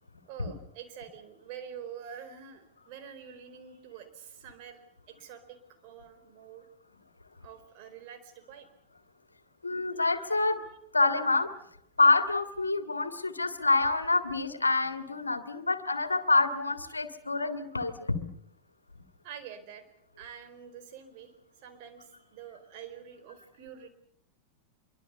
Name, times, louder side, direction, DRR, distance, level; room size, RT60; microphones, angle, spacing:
voice 1, 0.3-4.8 5.1-5.6 5.8-6.7 7.4-8.7 10.0-10.1 19.2-19.9 20.2-21.3 21.6-23.9, right 8 dB, 45° right, 8 dB, 4.4 m, -46 dB
voice 2, 9.6-10.6 10.9-11.5 12.0-18.3, left 3 dB, 80° left, 10 dB, 2.0 m, -27 dB
25.5 x 23.5 x 6.9 m, 0.71 s
figure-of-eight pair, 90°, 0 cm